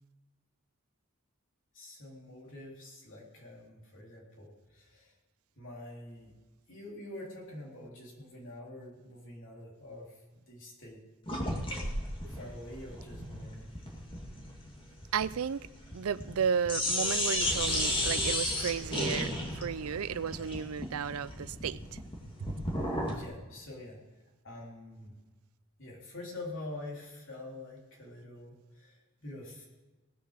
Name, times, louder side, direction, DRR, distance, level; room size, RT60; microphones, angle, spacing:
voice 1, 1.7-5.1 5.6-6.3 6.7-11.0 11.7-11.8 12.3-13.7 23.0-24.0 24.4-25.1 25.8-29.6, left 1 dB, 60° left, -2 dB, 3.4 m, -46 dB
sound 1, 11.3-16.4 16.7-23.2, left 1 dB, 25° left, 2.1 m, -34 dB
voice 2, 15.1-15.7 15.9-22.0, right 7 dB, 85° right, 17 dB, 0.5 m, -33 dB
sound 2, 17.4-21.2 21.4-21.5, right 1 dB, 65° right, 2.2 m, -45 dB
18.0 x 6.8 x 6.5 m, 1.2 s
head